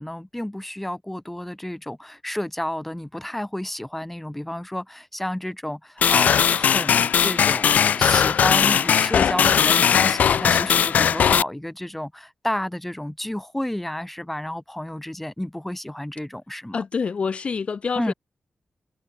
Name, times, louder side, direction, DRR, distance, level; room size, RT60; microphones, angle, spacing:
voice 1, 0.0-16.8 18.0-18.1, left 1 dB, 5° left, 7.5 m, -31 dB
sound 1, 6.0-11.4, left 8 dB, 85° left, 0.8 m, -19 dB
voice 2, 16.7-18.1, left 5 dB, 50° left, 5.5 m, -26 dB
wide cardioid pair, 145°, 3 cm